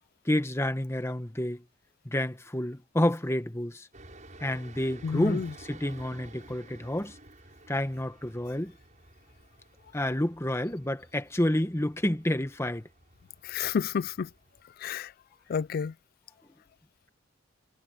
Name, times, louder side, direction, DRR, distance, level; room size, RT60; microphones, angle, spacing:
voice 1, 0.2-1.6 2.0-3.9 4.4-7.1 7.7-8.7 9.9-12.8, left 1 dB, 15° left, 1.3 m, -29 dB
sound 1, 3.9-14.6, right 2 dB, 40° right, 7.1 m, -53 dB
voice 2, 5.0-5.5 13.5-14.3 14.8-15.1 15.5-15.9, left 6 dB, 50° left, 0.3 m, -30 dB
head